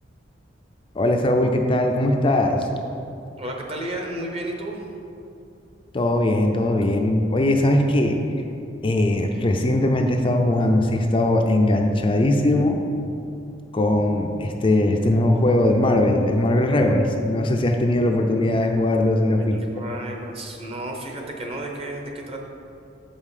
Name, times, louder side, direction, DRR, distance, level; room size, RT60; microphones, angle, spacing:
voice 1, 1.0-2.7 5.9-8.1 8.8-12.8 13.7-19.6, left 1 dB, 30° left, 3 dB, 0.4 m, -20 dB
voice 2, 3.4-4.8 19.4-22.4, right 1 dB, 30° right, 1 dB, 0.9 m, -32 dB
7.2 x 5.5 x 4.9 m, 2.6 s
head